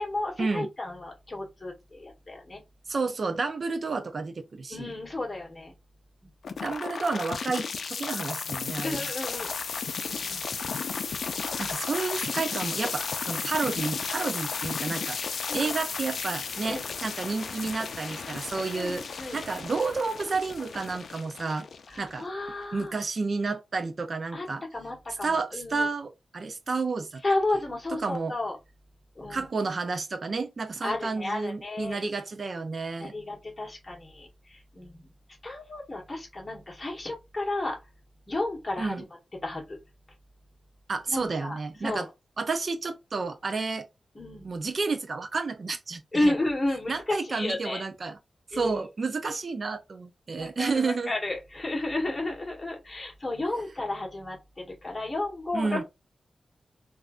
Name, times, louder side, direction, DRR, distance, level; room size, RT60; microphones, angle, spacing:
voice 1, 0.0-2.6 4.7-5.7 6.2-6.6 8.8-9.5 10.0-10.4 11.1-11.2 15.5-15.7 16.7-16.8 18.7-19.4 21.9-23.0 24.3-24.5 24.7-25.9 27.2-28.6 29.1-29.5 30.8-32.1 33.0-35.1 35.4-37.8 38.3-39.0 39.4-39.8 41.1-42.1 44.1-44.5 46.1-47.8 48.5-48.8 50.4-55.8, left 2 dB, 25° left, 1.4 m, -32 dB
voice 2, 2.9-4.9 6.6-9.1 11.6-15.2 15.5-19.0 19.3-21.7 22.0-22.3 22.7-24.6 25.2-27.2 27.9-28.3 29.3-33.1 38.8-39.0 40.9-42.1 42.4-43.9 44.4-46.3 46.9-48.2 48.5-51.1 55.5-55.8, right 4 dB, 50° right, 0.5 m, -31 dB
sound 1, 6.4-22.5, left 5 dB, 75° left, 0.4 m, -34 dB
3.4 x 2.6 x 2.4 m
wide cardioid pair, 120°, 0 cm